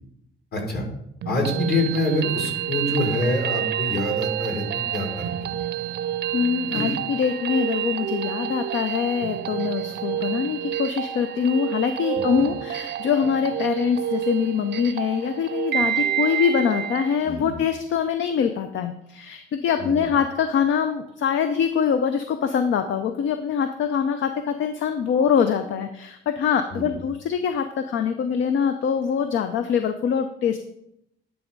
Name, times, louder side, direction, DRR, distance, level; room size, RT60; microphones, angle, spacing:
voice 1, 0.5-0.8 1.3-5.5 6.7-7.0 12.1-12.5 17.2-17.6 19.8-20.1 26.7-27.0, left 1 dB, 55° left, 1 dB, 2.3 m, -26 dB
sound 1, 1.2-17.2, right 11 dB, 60° right, 0.5 m, -28 dB
voice 2, 6.3-30.6, left 7 dB, 70° left, 8 dB, 0.5 m, -24 dB
10.5 x 3.5 x 5.2 m, 0.79 s
cardioid pair, 90°, 20 cm